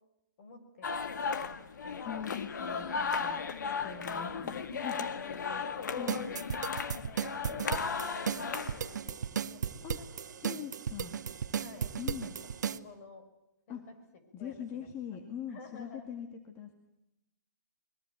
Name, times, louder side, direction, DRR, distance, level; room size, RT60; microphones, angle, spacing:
voice 1, 0.4-2.2 5.2-5.7 6.4-7.0 7.3-10.2 10.5-10.6 11.6-13.3 13.7-13.9 14.4-14.9 15.5-16.1, left 4 dB, 45° left, 8 dB, 5.8 m, -52 dB
sound 1, 0.8-9.0, left 5 dB, 70° left, 1.9 m, -35 dB
voice 2, 2.0-5.1 5.7-6.4 9.8-10.0 10.4-11.1 12.0-12.3 13.7-13.9 14.3-16.7, left 9 dB, 25° left, 5 dB, 2.1 m, -42 dB
sound 2, 6.1-12.8, right 7 dB, 70° right, 1.1 m, -35 dB
22.5 x 22.0 x 9.3 m, 0.88 s
hypercardioid pair, 140°, 10 cm